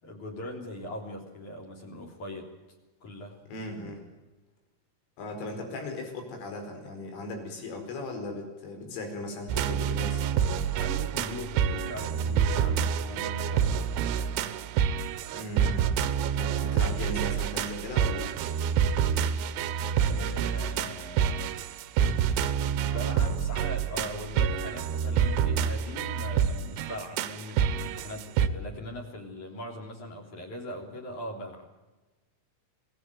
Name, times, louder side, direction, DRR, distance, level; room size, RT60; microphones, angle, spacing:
voice 1, 0.0-2.5 3.0-3.4 10.7-13.9 19.5-21.5 22.0-31.7, left 1 dB, 40° left, 0 dB, 4.3 m, -41 dB
voice 2, 3.5-4.0 5.2-10.2 15.3-15.9 16.4-18.4, left 2 dB, 85° left, 4 dB, 7.4 m, -37 dB
sound 1, 9.5-28.5, right 8 dB, 85° right, 3.4 m, -27 dB
25.5 x 18.5 x 9.2 m, 1.2 s
omnidirectional pair, 5.5 m